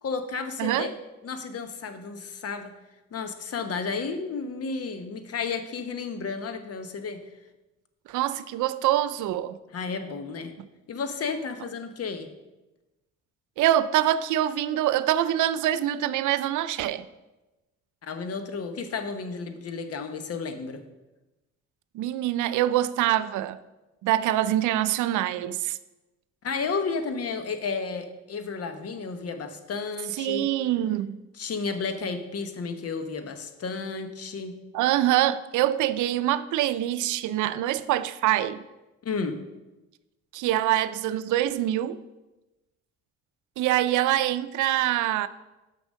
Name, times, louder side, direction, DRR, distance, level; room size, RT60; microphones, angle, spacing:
voice 1, 0.0-0.9 1.2-2.7 3.1-7.2 9.7-10.6 10.9-12.3 18.0-20.8 26.4-30.5 31.4-34.6 39.0-39.5, left 4 dB, 55° left, 1.0 m, -32 dB
voice 2, 8.1-9.6 13.6-17.1 21.9-23.6 24.0-25.8 30.2-31.2 34.7-38.6 40.3-42.0 43.6-45.3, right 13 dB, 80° right, 0.5 m, -25 dB
6.2 x 5.9 x 6.3 m
cardioid pair, 90°, 30 cm